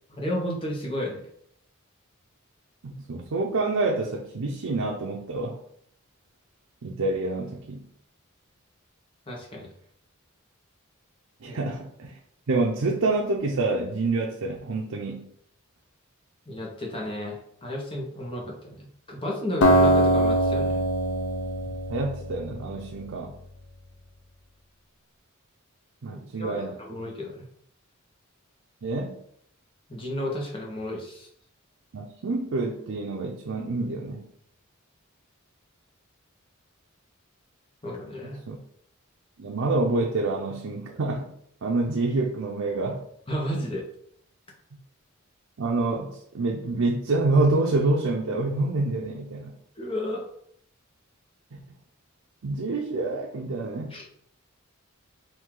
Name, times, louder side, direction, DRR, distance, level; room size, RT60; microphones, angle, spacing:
voice 1, 0.1-1.2 9.3-9.7 11.5-11.6 16.5-20.8 26.1-27.4 29.9-31.3 37.8-38.4 43.3-43.9 49.8-50.2 53.9-54.1, left 1 dB, 25° left, -1 dB, 1.0 m, -33 dB
voice 2, 2.8-5.6 6.8-7.9 11.4-12.1 12.5-15.3 21.9-23.3 26.0-26.7 28.8-29.2 31.9-34.2 38.5-38.6 39.4-41.3 41.6-43.0 45.6-49.6 51.5-51.6 52.4-53.9, right 2 dB, 75° right, 0 dB, 0.5 m, -27 dB
Acoustic guitar, 19.6-22.8, right 1 dB, 75° left, 0.6 m, -22 dB
4.6 x 2.7 x 3.7 m, 0.68 s
head